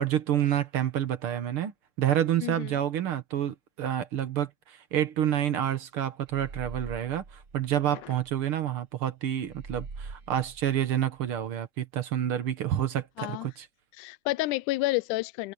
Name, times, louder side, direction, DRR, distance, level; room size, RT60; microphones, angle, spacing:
voice 1, 0.0-1.7 2.0-13.7, right 10 dB, 55° right, 1.7 m, -28 dB
sound 1, 6.3-8.4 9.4-11.5, right 4 dB, 35° right, 1.8 m, -44 dB
voice 2, 14.0-15.5, left 19 dB, 85° left, 2.0 m, -29 dB
omnidirectional pair, 3.6 m